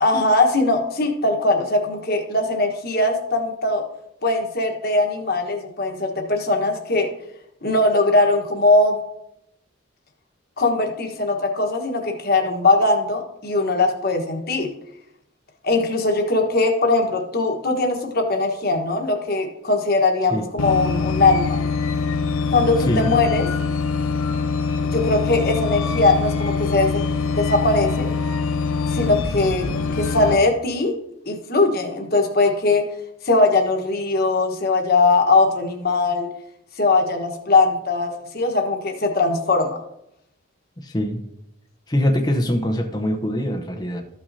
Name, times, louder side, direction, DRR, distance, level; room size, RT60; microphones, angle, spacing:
voice 1, 0.0-3.8 4.2-7.1 7.6-9.0 10.6-14.7 15.6-21.6 22.5-23.5 24.8-26.9 27.3-28.1 28.9-29.7 29.9-30.9 31.3-32.8 33.2-36.3 36.8-39.8, left 2 dB, 45° left, 2 dB, 1.3 m, -20 dB
sound 1, 20.6-30.4, left 4 dB, 75° left, 0.6 m, -24 dB
voice 2, 22.8-23.1 40.8-41.2 41.9-44.0, equal, 20° left, 4 dB, 0.8 m, -23 dB
14.0 x 5.9 x 2.8 m, 0.80 s
head